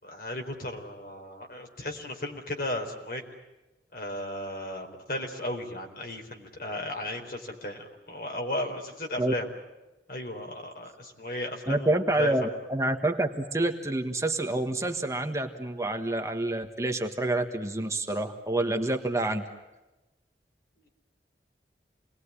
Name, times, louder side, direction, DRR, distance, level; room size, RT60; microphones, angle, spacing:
voice 1, 0.0-3.2 3.9-9.5 10.1-12.3, left 1 dB, 55° left, 3 dB, 4.2 m, -35 dB
voice 2, 11.7-19.4, right 2 dB, 20° right, 4 dB, 1.5 m, -28 dB
28.5 x 21.0 x 10.0 m, 1.1 s
head